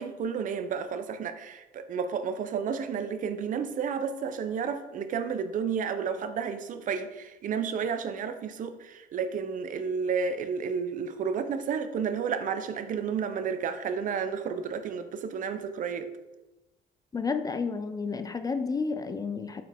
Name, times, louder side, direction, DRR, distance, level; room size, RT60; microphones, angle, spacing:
voice 1, 0.0-16.1, right 6 dB, 50° right, 0.6 m, -31 dB
voice 2, 17.1-19.6, left 4 dB, 20° left, 0.3 m, -31 dB
6.3 x 4.5 x 3.4 m
cardioid pair, 110°, 17 cm